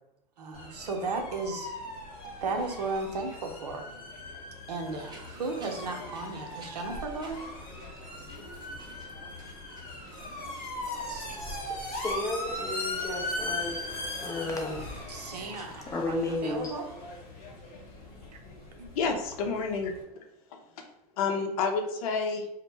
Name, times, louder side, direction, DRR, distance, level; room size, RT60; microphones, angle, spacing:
voice 1, 0.4-1.7 2.4-3.9 4.7-7.4 11.1-11.4 15.1-16.9, right 3 dB, 85° right, 3 dB, 0.6 m, -35 dB
sound 1, 0.5-20.0, left 1 dB, 45° left, 1.1 m, -39 dB
sound 2, 4.8-11.6, right 2 dB, 20° right, 0.7 m, -51 dB
voice 2, 11.7-13.8 14.2-14.9 15.5-16.7, left 2 dB, 15° left, 2 dB, 0.5 m, -33 dB
voice 3, 18.9-20.2 20.8-20.9 21.2-22.5, left 4 dB, 65° left, 3 dB, 0.6 m, -29 dB
2.0 x 2.0 x 3.1 m, 0.89 s
hypercardioid pair, 100°, 20 cm